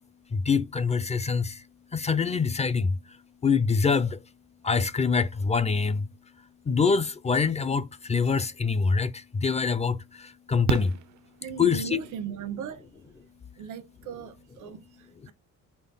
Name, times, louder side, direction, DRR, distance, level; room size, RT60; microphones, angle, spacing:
voice 1, 0.5-1.5 1.9-2.9 3.4-4.1 4.6-6.0 6.7-7.8 8.1-9.1 9.4-10.0 10.5-10.9 11.6-12.0, left 5 dB, 20° left, 0.4 m, -24 dB
Fireworks, 9.0-9.1 10.7-12.0 13.7-13.8 14.0-14.1, right 10 dB, 70° right, 0.5 m, -32 dB
voice 2, 11.4-12.9 13.6-15.3, right 7 dB, 85° right, 1.0 m, -38 dB
4.2 x 3.1 x 3.9 m
cardioid pair, 90°, 30 cm